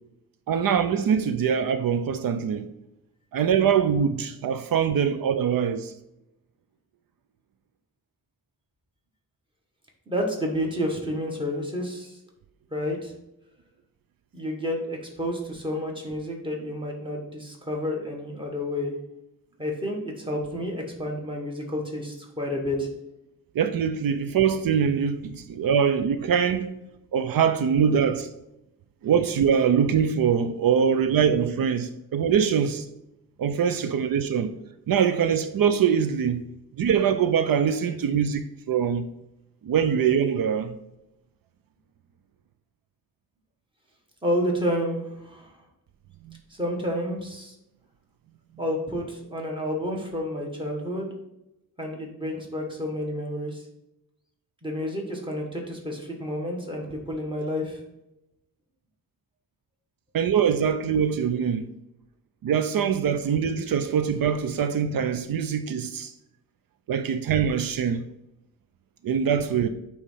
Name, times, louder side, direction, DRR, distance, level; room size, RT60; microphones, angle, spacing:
voice 1, 0.5-2.7 3.3-5.9 23.5-26.8 27.1-28.3 29.0-32.9 33.4-34.5 34.9-36.5 36.7-39.1 39.6-40.8 46.2-46.4 60.1-61.7 62.4-66.1 66.9-68.0 69.0-69.7, right 7 dB, 85° right, 0.6 m, -23 dB
voice 2, 10.1-12.1 12.7-13.1 14.3-18.9 19.6-22.9 44.2-45.5 46.6-47.5 48.6-51.1 51.8-53.6 54.6-57.8, equal, 15° right, 1.4 m, -30 dB
8.2 x 3.2 x 5.6 m
wide cardioid pair, 160°, 33 cm